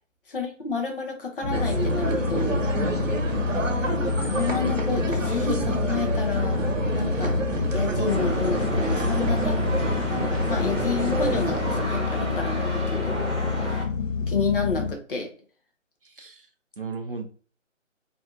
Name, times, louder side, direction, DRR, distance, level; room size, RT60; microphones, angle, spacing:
voice 1, 0.3-2.6 4.0-6.6 6.9-7.3 7.7-9.6 10.4-13.1 14.2-15.3, left 4 dB, 45° left, 2 dB, 0.7 m, -30 dB
sound 1, 1.4-14.9, left 5 dB, 80° left, 0.9 m, -28 dB
sound 2, 1.5-11.8, right 2 dB, 80° right, 0.7 m, -28 dB
voice 2, 2.7-3.1 3.6-3.7 16.0-16.5 16.8-17.2, right 3 dB, 45° right, 5 dB, 0.4 m, -35 dB
sound 3, 8.0-13.8, equal, ahead, 0.6 m, -32 dB
2.7 x 2.6 x 2.4 m, 0.43 s
figure-of-eight pair, 150°, 38 cm